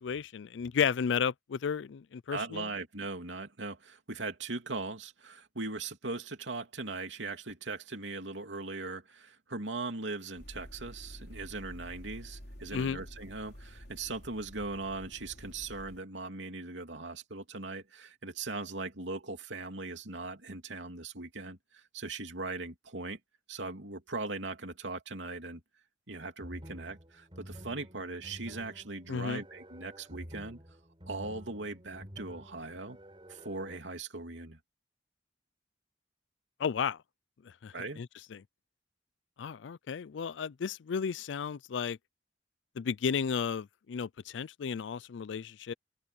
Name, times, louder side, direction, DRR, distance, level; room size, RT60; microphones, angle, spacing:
voice 1, 0.0-2.7 12.7-13.0 29.1-29.4 36.6-37.0 37.6-38.4 39.4-42.0 42.8-45.7, left 6 dB, 80° left, 0.4 m, -33 dB
voice 2, 2.3-23.2 23.5-25.6 26.1-30.6 31.1-33.0 33.3-34.6 37.7-38.0, right 3 dB, 85° right, 3.0 m, -39 dB
sound 1, 10.4-16.0, equal, 60° left, 4.6 m, -49 dB
sound 2, 26.4-33.8, equal, 30° right, 5.4 m, -50 dB
open air
head